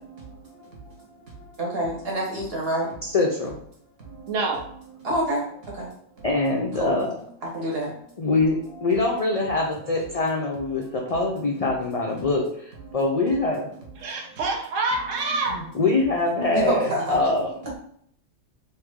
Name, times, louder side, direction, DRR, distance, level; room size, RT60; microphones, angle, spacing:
voice 1, 1.6-2.9 5.0-5.4 5.8-5.9 6.8-6.9 7.5-7.9 16.5-17.2, right 1 dB, 55° right, -2 dB, 1.4 m, -26 dB
voice 2, 3.0-3.6 6.2-7.2 8.2-13.7 15.5-17.5, left 3 dB, 55° left, -1 dB, 0.4 m, -24 dB
voice 3, 14.0-15.6, right 3 dB, 85° right, 3 dB, 1.1 m, -26 dB
3.2 x 2.7 x 3.5 m, 0.65 s
omnidirectional pair, 1.3 m